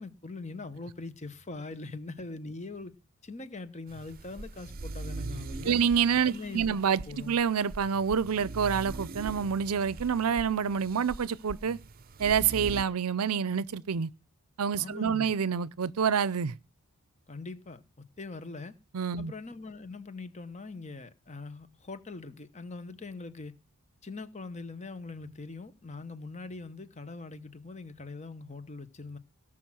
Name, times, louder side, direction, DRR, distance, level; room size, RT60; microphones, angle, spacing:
voice 1, 0.0-2.9 3.2-5.9 6.2-6.8 7.1-7.3 14.8-15.3 17.3-17.8 18.2-18.8 19.2-23.5 24.0-29.2, left 3 dB, 30° left, 1.0 m, -42 dB
sound 1, 3.9-12.8, right 3 dB, 40° right, 0.6 m, -42 dB
voice 2, 5.6-11.8 12.2-14.1 14.6-16.5 18.9-19.3, right 7 dB, 80° right, 0.5 m, -27 dB
18.0 x 6.1 x 6.2 m
head